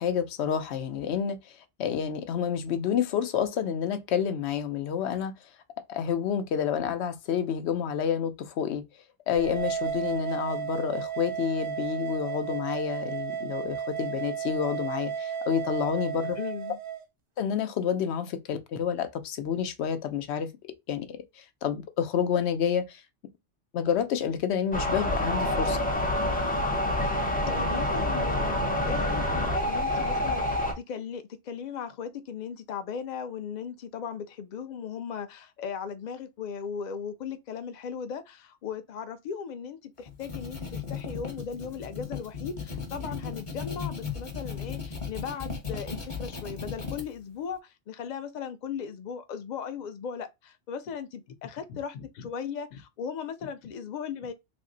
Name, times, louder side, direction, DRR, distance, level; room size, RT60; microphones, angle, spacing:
voice 1, 0.0-5.3 5.9-8.8 9.3-16.4 17.4-20.5 20.9-23.0 23.7-25.8, left 8 dB, 75° left, 0.9 m, -29 dB
sound 1, 9.3-17.0, right 8 dB, 40° right, 0.5 m, -33 dB
voice 2, 16.4-16.8 27.0-28.6 28.8-54.3, left 7 dB, 55° left, 0.5 m, -37 dB
sound 2, 24.7-30.7, left 1 dB, 10° left, 0.5 m, -27 dB
sound 3, 40.0-47.0, left 5 dB, 30° left, 0.9 m, -36 dB
3.5 x 2.1 x 3.7 m
omnidirectional pair, 1.2 m